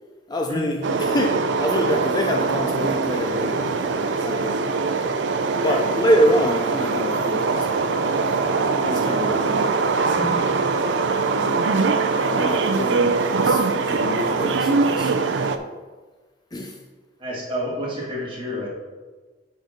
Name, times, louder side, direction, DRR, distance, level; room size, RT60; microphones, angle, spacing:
voice 1, 0.3-4.6 5.6-7.9 8.3-9.6 11.2-11.6 12.0-15.1 16.5-16.8, equal, 25° left, 2 dB, 0.5 m, -26 dB
sound 1, 0.8-15.6, right 4 dB, 85° right, 0.5 m, -22 dB
voice 2, 10.2-10.6 17.2-18.7, equal, 30° right, -4 dB, 2.2 m, -29 dB
5.8 x 5.4 x 5.1 m, 1.3 s
head